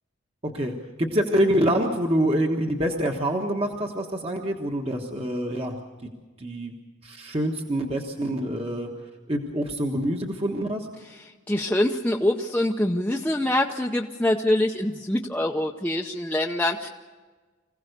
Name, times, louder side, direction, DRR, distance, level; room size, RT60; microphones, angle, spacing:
voice 1, 0.4-0.7 1.0-5.8 6.4-6.7 7.0-8.9 9.3-10.9, equal, 30° right, 2 dB, 1.4 m, -26 dB
voice 2, 11.5-16.9, left 1 dB, 10° left, 0 dB, 0.7 m, -24 dB
25.5 x 16.5 x 6.7 m, 1.4 s
head